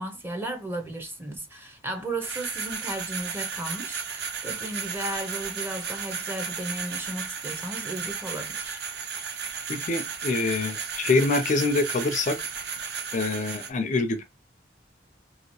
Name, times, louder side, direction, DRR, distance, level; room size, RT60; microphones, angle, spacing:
voice 1, 0.0-8.8, right 1 dB, 10° right, 0.7 m, -35 dB
sound 1, 2.2-13.7, right 6 dB, 60° right, 0.6 m, -34 dB
voice 2, 9.7-12.4 13.1-14.2, left 3 dB, 40° left, 0.4 m, -25 dB
2.8 x 2.8 x 2.9 m
head